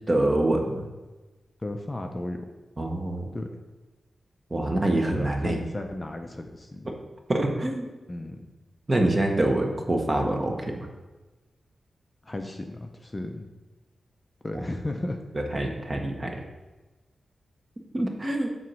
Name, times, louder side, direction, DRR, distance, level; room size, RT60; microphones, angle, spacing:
voice 1, 0.1-0.9 2.8-3.3 4.5-5.6 6.9-7.0 7.3-7.8 8.9-10.9 15.3-16.3 17.9-18.5, right 1 dB, 30° right, 2 dB, 0.9 m, -25 dB
voice 2, 1.6-2.4 3.3-3.6 5.1-6.9 8.1-8.5 12.2-13.5 14.4-15.2, left 1 dB, 20° left, 4 dB, 0.5 m, -34 dB
7.4 x 3.1 x 6.0 m, 1.2 s
wide cardioid pair, 130°, 0 cm